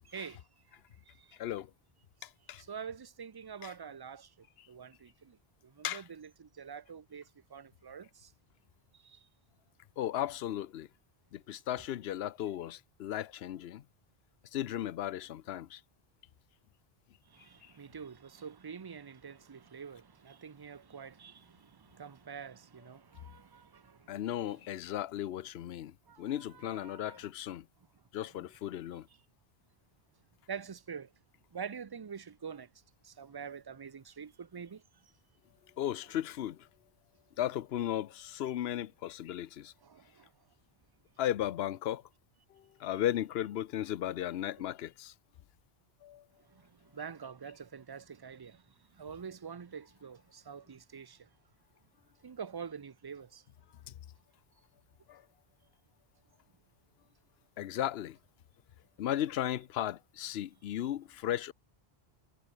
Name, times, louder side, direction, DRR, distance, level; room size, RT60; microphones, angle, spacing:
voice 1, 0.1-0.4 2.6-4.3 4.7-5.4 5.8-7.2 7.5-8.3 9.0-9.2 17.3-24.0 26.1-27.2 30.5-31.1 31.5-32.7 33.0-34.8 39.8-40.3 46.9-48.6 49.0-51.2 52.2-53.4, right 6 dB, 30° right, 0.4 m, -46 dB
voice 2, 1.3-1.7 2.2-2.6 3.6-3.7 4.6-4.7 5.8-6.0 10.0-10.9 11.3-13.8 14.5-15.8 17.6-17.7 24.1-27.7 28.1-29.1 35.8-36.7 37.4-39.7 41.2-42.0 42.5-45.1 46.0-46.2 53.9-54.0 55.1-55.2 57.6-58.2 59.0-61.5, left 12 dB, 85° left, 0.9 m, -36 dB
omnidirectional pair, 1.0 m